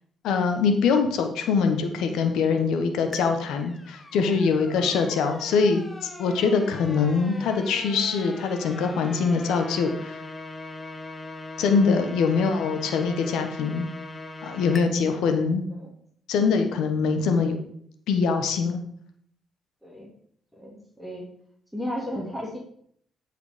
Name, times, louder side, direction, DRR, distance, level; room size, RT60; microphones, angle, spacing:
voice 1, 0.2-10.2 11.6-13.9 14.4-15.7 16.3-17.6 18.1-18.9, left 5 dB, 85° left, 6 dB, 1.3 m, -23 dB
sound 1, 3.1-14.8, left 2 dB, 20° left, 1.2 m, -40 dB
voice 2, 19.8-20.1 20.5-21.3 21.7-22.6, equal, ahead, -3 dB, 2.5 m, -34 dB
13.5 x 5.0 x 5.1 m, 0.65 s
cardioid pair, 90°, 0 cm